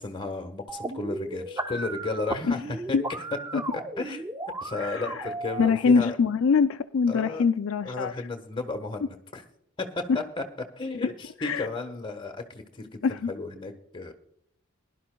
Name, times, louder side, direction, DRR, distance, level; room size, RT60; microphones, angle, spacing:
voice 1, 0.0-3.0 3.5-4.3 4.6-6.1 7.1-7.4 7.8-9.4 9.8-10.4 10.8-14.1, left 3 dB, 20° left, 4 dB, 1.2 m, -34 dB
sound 1, 0.7-5.7, right 2 dB, 15° right, 0.6 m, -35 dB
voice 2, 4.8-5.2 5.6-8.1 11.4-11.7 13.0-13.3, left 5 dB, 65° left, 9 dB, 0.4 m, -23 dB
21.0 x 11.5 x 2.2 m, 0.71 s
head